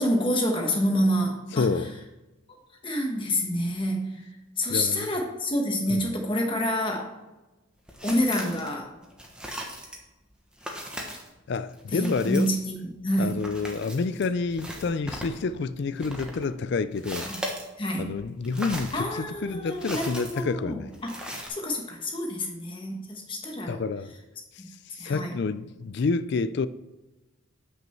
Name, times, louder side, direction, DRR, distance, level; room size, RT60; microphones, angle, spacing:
voice 1, 0.0-1.7 2.8-4.1 4.6-7.1 8.0-8.9 11.9-13.4 17.3-17.4 17.8-18.1 18.9-21.1 21.5-23.8 25.0-25.3, equal, 25° left, 1.2 m, -27 dB
voice 2, 1.5-2.0 4.7-5.1 5.9-6.0 11.5-12.5 13.2-17.3 18.0-20.9 23.7-24.1 24.9-26.7, left 4 dB, 50° left, 0.4 m, -28 dB
sound 1, 7.9-8.7 9.0-10.0 10.6-11.3 11.7-15.4 15.7-17.7 18.0-21.5, equal, 5° right, 1.0 m, -38 dB
7.8 x 6.2 x 4.4 m
head